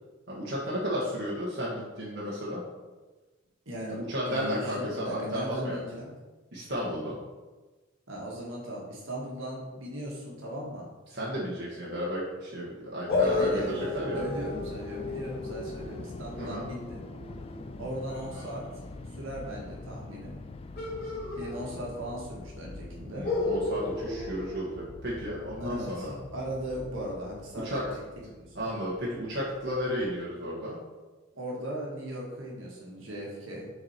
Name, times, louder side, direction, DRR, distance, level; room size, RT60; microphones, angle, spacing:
voice 1, 0.3-2.6 4.1-5.8 6.5-7.1 11.1-14.2 16.4-16.7 23.1-26.2 27.6-27.8 28.5-30.8, equal, 55° right, -6 dB, 1.4 m, -33 dB
voice 2, 4.3-6.2 8.1-10.9 13.2-13.8 14.1-17.0 17.8-18.7 19.1-20.4 21.4-23.3 25.6-27.9 28.3-28.7 31.3-33.7, equal, 75° right, -3 dB, 1.8 m, -37 dB
sound 1, 13.1-18.5 20.7-22.2 22.5-22.6 23.2-25.4, left 2 dB, 55° left, 2.1 m, -33 dB
sound 2, 13.1-30.2, left 2 dB, 30° left, 0.3 m, -44 dB
6.5 x 4.3 x 4.4 m, 1.2 s
head